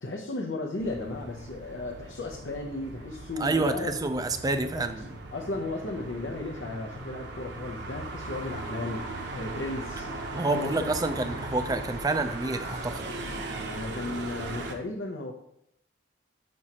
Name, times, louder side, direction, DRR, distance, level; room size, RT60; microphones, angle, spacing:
voice 1, 0.0-4.0 4.8-4.9 5.3-9.1 9.3-10.1 10.5-10.9 13.7-15.3, left 2 dB, 75° left, 1 dB, 0.7 m, -35 dB
sound 1, 0.8-14.7, right 2 dB, 60° right, 0.8 m, -38 dB
voice 2, 3.4-5.1 10.3-13.1, right 2 dB, 20° right, 9 dB, 0.4 m, -28 dB
6.3 x 5.9 x 2.9 m, 0.76 s
head